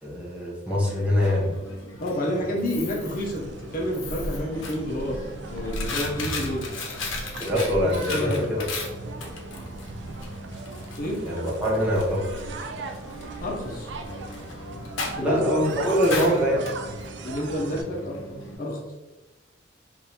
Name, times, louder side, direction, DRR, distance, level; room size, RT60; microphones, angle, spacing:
voice 1, 0.0-1.5 7.4-8.6 11.2-12.2 15.2-16.6, equal, 5° right, -6 dB, 0.8 m, -23 dB
Coin (dropping), 0.8-18.6, left 2 dB, 85° left, 0.7 m, -37 dB
voice 2, 2.0-5.2 5.5-6.6 7.8-8.5 11.0-11.2 13.4-13.9 15.2-15.4 16.0-16.2 17.2-18.8, left 1 dB, 45° left, -2 dB, 0.6 m, -29 dB
sound 1, 2.8-17.8, right 3 dB, 60° right, 0.3 m, -38 dB
3.5 x 2.6 x 2.8 m, 1.1 s
head